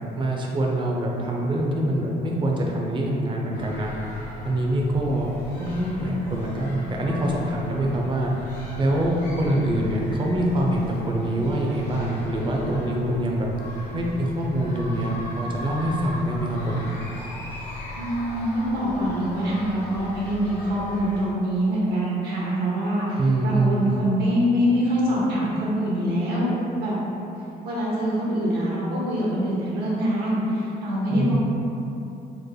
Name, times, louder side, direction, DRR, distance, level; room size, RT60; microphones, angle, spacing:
voice 1, 0.2-3.9 4.4-5.3 5.6-8.3 8.8-13.5 13.9-16.9 23.2-23.9 31.1-31.4, right 1 dB, 30° right, -1 dB, 0.5 m, -24 dB
sound 1, 3.5-21.2, left 1 dB, 75° left, 1.1 m, -38 dB
voice 2, 18.0-26.5 26.8-26.9 27.6-31.4, equal, 75° right, -6 dB, 1.0 m, -24 dB
3.3 x 2.0 x 3.7 m, 2.9 s
cardioid pair, 110°, 17 cm